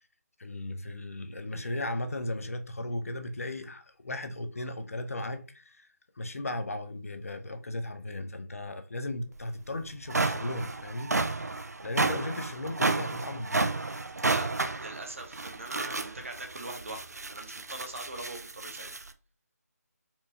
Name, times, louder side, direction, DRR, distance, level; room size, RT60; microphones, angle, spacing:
voice 1, 0.4-11.5 11.8-13.6, left 1 dB, 55° left, 0.5 m, -36 dB
sound 1, 9.4-9.5 9.9-19.1, right 3 dB, 70° right, 0.4 m, -32 dB
voice 2, 14.8-17.0 17.3-18.9, right 2 dB, 50° right, 0.8 m, -41 dB
4.3 x 2.3 x 2.7 m
figure-of-eight pair, 155°, 9 cm